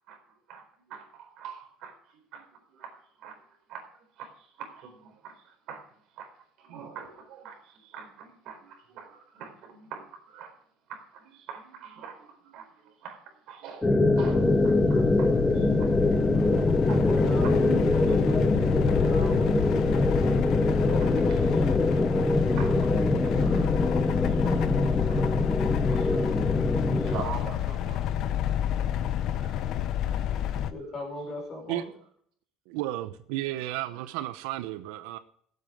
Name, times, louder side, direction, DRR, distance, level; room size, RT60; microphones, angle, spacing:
voice 1, 0.5-5.8 6.1-6.3 6.6-10.5 10.9-16.4 16.9-17.0 17.4-17.5 18.1-18.2 19.8-20.1 20.7-21.7 22.6-28.2 29.2-30.5 30.8-30.9 33.5-34.0, right 6 dB, 50° right, 4.2 m, -45 dB
sound 1, 13.8-27.2, left 2 dB, 10° left, 0.8 m, -24 dB
sound 2, 14.1-30.7, left 11 dB, 45° left, 0.7 m, -30 dB
voice 2, 17.0-19.5 20.5-21.8 30.7-31.9, left 2 dB, 25° left, 5.2 m, -38 dB
voice 3, 32.7-35.2, right 15 dB, 90° right, 0.8 m, -33 dB
14.5 x 8.3 x 5.0 m
cardioid pair, 170°, 0 cm